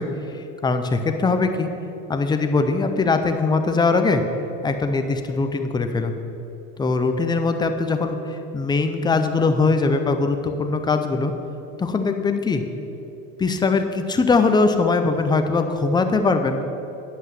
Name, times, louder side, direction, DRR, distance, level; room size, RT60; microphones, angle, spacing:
voice 1, 0.0-1.7 2.1-4.2 4.6-6.1 6.8-11.3 11.8-12.6 13.4-16.6, left 3 dB, 10° left, 6 dB, 0.5 m, -21 dB
9.7 x 5.6 x 7.3 m, 2.9 s
supercardioid pair, 135°, 39 cm